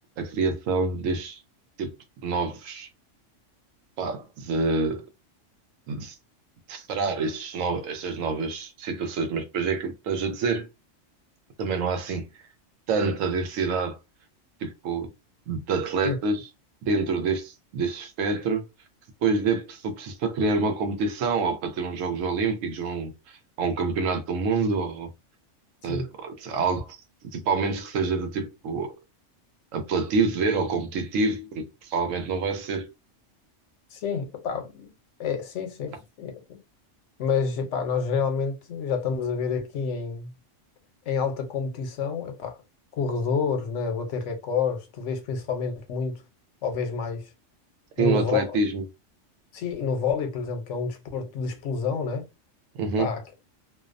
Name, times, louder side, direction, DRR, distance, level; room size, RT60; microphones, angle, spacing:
voice 1, 0.2-1.4 1.8-1.9 2.2-2.9 4.0-5.0 5.9-6.2 6.7-10.7 11.6-12.3 12.9-14.0 14.6-15.1 15.5-16.5 16.9-18.6 19.2-25.1 25.8-27.0 27.3-29.0 29.7-32.9 48.0-48.8 52.7-53.1, right 4 dB, 90° right, 1.0 m, -27 dB
voice 2, 33.9-34.9 35.2-36.6 37.2-40.3 41.1-42.6 43.0-46.2 46.6-47.3 48.0-48.4 49.5-52.2 53.0-53.2, left 5 dB, 75° left, 1.0 m, -28 dB
2.6 x 2.0 x 2.5 m
omnidirectional pair, 1.3 m